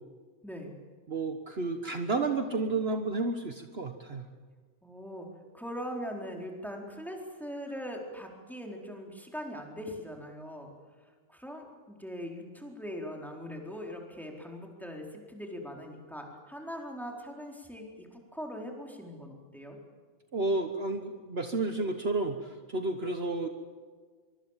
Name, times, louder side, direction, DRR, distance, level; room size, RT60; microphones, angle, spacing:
voice 1, 0.4-0.7 4.8-5.3 5.5-10.7 11.3-19.8, equal, ahead, 0 dB, 4.2 m, -41 dB
voice 2, 1.1-4.2 20.3-23.5, right 3 dB, 50° right, 6 dB, 1.6 m, -31 dB
24.5 x 24.0 x 7.4 m, 1.6 s
omnidirectional pair, 1.3 m